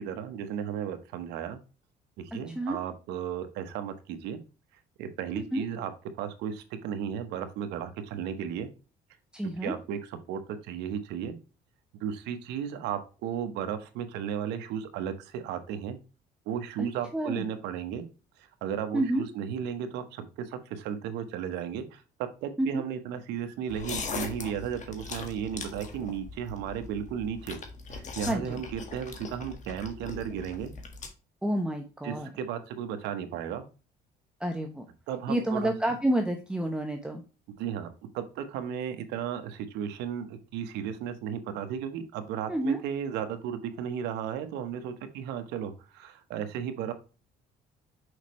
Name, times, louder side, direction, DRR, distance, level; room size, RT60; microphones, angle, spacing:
voice 1, 0.0-1.6 2.2-4.4 5.0-5.9 6.2-8.7 9.6-10.0 10.3-11.4 12.0-16.0 16.5-18.0 18.6-27.6 27.9-30.7 32.0-33.6 35.1-35.7 37.6-46.9, right 8 dB, 90° right, 8 dB, 1.1 m, -34 dB
voice 2, 5.3-5.6 9.3-9.7 16.8-17.5 18.9-19.2 22.6-22.8 28.3-28.6 31.4-32.3 34.4-34.9 35.3-37.2 42.5-42.8, right 1 dB, 5° right, 3 dB, 0.9 m, -29 dB
sound 1, 23.7-31.1, left 4 dB, 45° left, 1.6 m, -40 dB
6.5 x 5.2 x 3.1 m, 0.32 s
cardioid pair, 110°, 17 cm